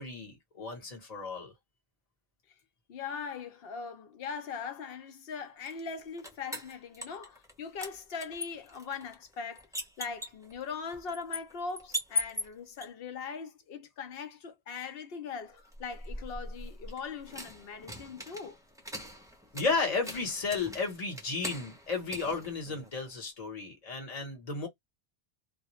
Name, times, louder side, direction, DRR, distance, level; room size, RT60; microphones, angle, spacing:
voice 1, 0.0-1.5 19.5-24.7, left 4 dB, 40° left, 1.0 m, -33 dB
voice 2, 2.9-18.6, left 5 dB, 70° left, 0.8 m, -40 dB
sound 1, 5.7-7.5 7.8-12.9 15.6-23.1, left 1 dB, 5° right, 0.4 m, -41 dB
2.2 x 2.1 x 2.9 m
omnidirectional pair, 1.0 m